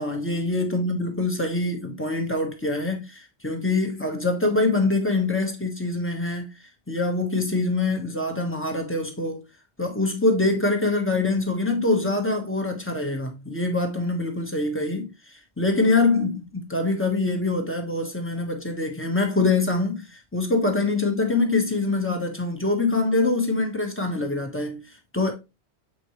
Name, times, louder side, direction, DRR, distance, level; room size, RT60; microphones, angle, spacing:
voice 1, 0.0-6.5 6.9-9.4 9.8-25.3, left 3 dB, 10° left, 1.4 m, -24 dB
7.8 x 4.5 x 3.2 m
omnidirectional pair, 1.1 m